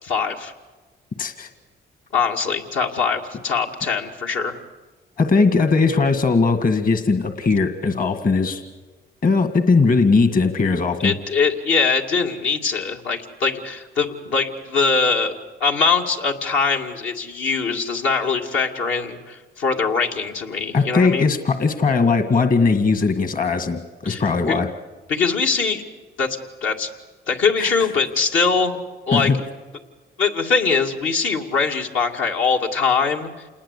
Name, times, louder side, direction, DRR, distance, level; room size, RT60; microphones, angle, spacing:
voice 1, 0.0-0.5 2.1-4.6 11.0-15.3 15.6-21.3 24.1-24.6 25.1-25.8 26.2-26.9 27.3-28.8 29.1-29.3 30.2-33.3, left 5 dB, 75° left, 1 dB, 2.5 m, -22 dB
voice 2, 1.2-1.5 5.2-8.6 9.2-11.1 20.7-24.7 27.6-27.7 29.1-29.4, left 4 dB, 45° left, 8 dB, 1.8 m, -19 dB
27.5 x 20.0 x 8.4 m, 1.3 s
cardioid pair, 90°, 20 cm